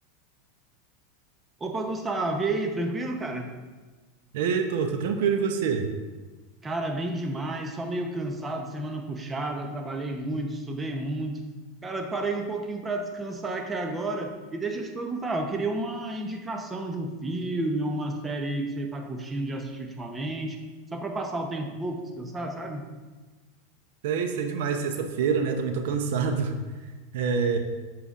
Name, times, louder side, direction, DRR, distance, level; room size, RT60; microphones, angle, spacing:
voice 1, 1.6-3.6 6.6-11.4 11.8-20.6 20.9-22.8, right 2 dB, 20° right, 4 dB, 0.8 m, -31 dB
voice 2, 4.3-5.9 24.0-26.6 27.1-27.6, right 6 dB, 70° right, 6 dB, 0.7 m, -26 dB
8.1 x 6.8 x 2.5 m, 1.3 s
hypercardioid pair, 115°, 0 cm